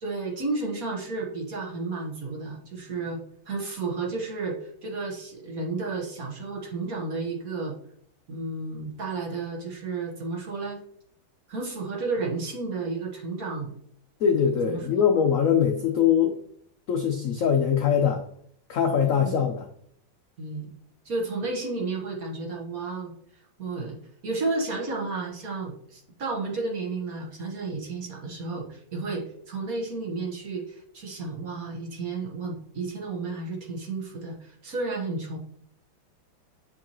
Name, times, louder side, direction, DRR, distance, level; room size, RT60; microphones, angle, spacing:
voice 1, 0.0-3.2 3.5-7.8 8.3-10.8 11.5-13.7 14.6-15.1 19.0-19.5 20.4-20.7 21.0-23.1 23.6-35.4, right 3 dB, 50° right, -1 dB, 1.6 m, -32 dB
voice 2, 14.2-16.4 16.9-18.2 18.7-19.6, left 8 dB, 75° left, 4 dB, 0.7 m, -22 dB
7.2 x 4.6 x 3.0 m, 0.65 s
omnidirectional pair, 2.1 m